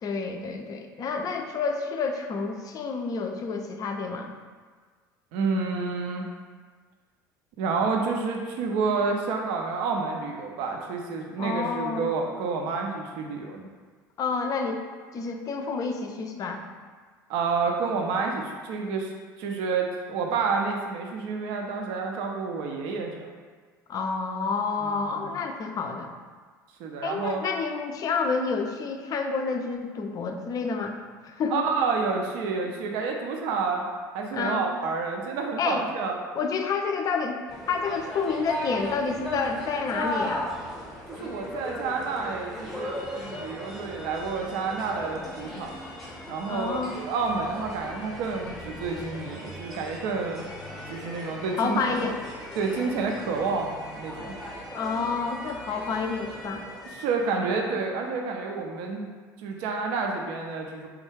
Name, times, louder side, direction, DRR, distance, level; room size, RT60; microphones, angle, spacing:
voice 1, 0.0-4.3 11.4-12.1 14.2-14.8 15.1-16.6 23.9-26.1 27.0-31.0 31.2-31.6 34.3-34.7 35.6-35.9 36.4-37.4 37.7-40.5 46.5-47.0 51.6-52.2 54.7-56.6, left 4 dB, 35° left, 4 dB, 0.4 m, -29 dB
voice 2, 5.3-6.3 7.6-13.7 17.3-19.1 19.4-23.3 24.8-25.3 26.8-27.4 31.5-33.9 34.1-36.2 41.2-45.9 46.3-50.4 50.9-52.0 52.6-54.4 56.9-59.1 59.4-60.9, right 4 dB, 60° right, 1 dB, 0.4 m, -29 dB
sound 1, 37.5-57.3, left 1 dB, ahead, 0.7 m, -37 dB
3.3 x 2.2 x 3.2 m, 1.5 s
figure-of-eight pair, 65°, 11 cm